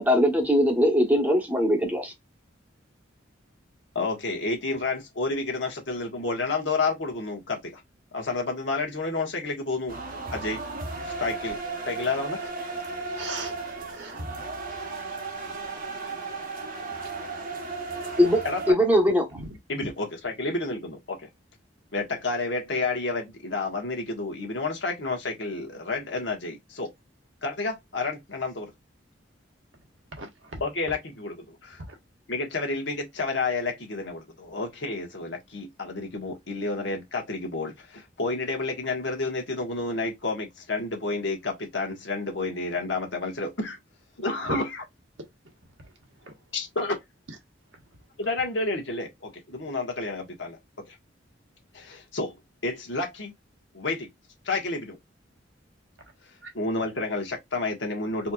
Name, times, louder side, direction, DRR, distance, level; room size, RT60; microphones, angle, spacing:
voice 1, 0.0-2.1 18.2-18.4 18.7-19.3, equal, 10° right, 1.1 m, -21 dB
voice 2, 3.9-7.8 8.1-10.0 10.3-10.6 11.2-11.6 11.9-12.4 18.4-18.8 19.7-21.3 21.9-26.9 27.4-28.7 30.6-31.8 32.3-43.8 44.2-44.8 46.5-46.9 48.2-50.6 50.9-51.0 51.7-52.4 52.6-53.3 53.7-54.1 54.4-55.0 56.5-58.3, left 3 dB, 70° left, 1.3 m, -30 dB
sound 1, 9.9-18.7, right 3 dB, 50° right, 0.9 m, -35 dB
voice 3, 13.1-14.2 16.3-17.3 19.3-19.5 30.1-30.6 31.8-32.0 44.4-44.6 46.2-46.3 56.4-56.5, right 2 dB, 85° right, 1.4 m, -39 dB
4.3 x 2.9 x 2.3 m
head